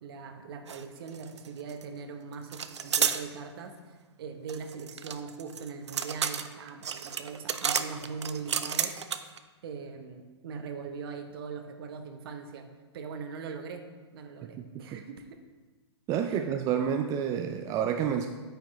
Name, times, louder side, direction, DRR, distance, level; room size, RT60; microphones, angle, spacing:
voice 1, 0.0-9.0 9.6-12.7 12.9-13.8 14.1-15.4 16.3-16.4, right 5 dB, 55° right, 6 dB, 1.0 m, -41 dB
sound 1, 0.7-0.8 1.1-1.8 2.5-3.2 4.5-9.4, right 7 dB, 80° right, 0.5 m, -31 dB
voice 2, 16.1-18.3, right 8 dB, 25° right, 5 dB, 0.4 m, -29 dB
9.1 x 7.0 x 3.1 m, 1.3 s
hypercardioid pair, 125°, 15 cm